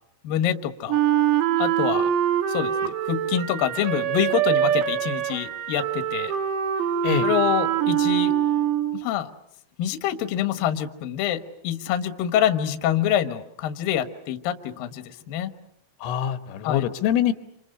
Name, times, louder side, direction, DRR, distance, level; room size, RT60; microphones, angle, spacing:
voice 1, 0.2-1.0 1.6-2.1 2.5-6.4 7.2-8.3 8.9-9.3 9.8-15.5 16.6-16.8, left 10 dB, 65° left, 9 dB, 2.4 m, -26 dB
Wind instrument woodwind instrument, 0.9-9.1, right 10 dB, 70° right, 3.2 m, -24 dB
voice 2, 16.0-17.3, left 9 dB, 90° left, 9 dB, 3.8 m, -24 dB
28.0 x 27.5 x 6.7 m, 0.79 s
omnidirectional pair, 5.6 m